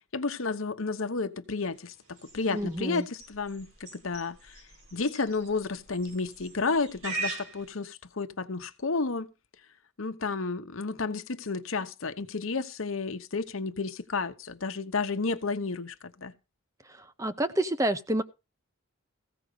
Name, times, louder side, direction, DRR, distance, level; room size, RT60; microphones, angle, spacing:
voice 1, 0.1-4.6 4.9-9.3 10.0-16.3, left 4 dB, 80° left, 1.0 m, -32 dB
sound 1, 1.8-7.7, right 3 dB, 90° right, 5.5 m, -41 dB
voice 2, 2.5-3.1 16.9-18.2, right 1 dB, 15° right, 0.6 m, -29 dB
15.5 x 5.1 x 6.7 m
head